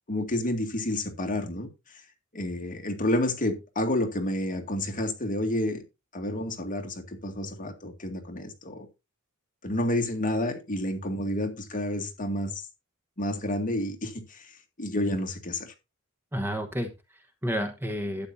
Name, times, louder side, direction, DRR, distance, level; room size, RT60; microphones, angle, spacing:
voice 1, 0.1-1.7 1.9-2.0 2.3-5.8 6.1-8.9 9.6-12.6 13.2-15.7, left 1 dB, 40° left, 2.1 m, -30 dB
voice 2, 16.3-18.3, equal, 10° right, 1.1 m, -31 dB
12.0 x 9.2 x 2.7 m
head